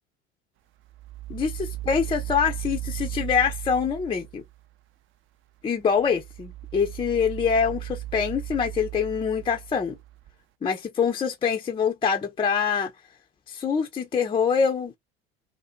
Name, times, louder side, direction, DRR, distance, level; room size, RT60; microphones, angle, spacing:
sound 1, 0.9-4.6 5.9-10.3, right 15 dB, 40° right, 0.4 m, -36 dB
voice 1, 1.3-4.4 5.6-10.0 10.6-12.9 13.5-15.0, left 6 dB, 15° left, 0.4 m, -25 dB
2.5 x 2.1 x 2.4 m
hypercardioid pair, 75°, 31 cm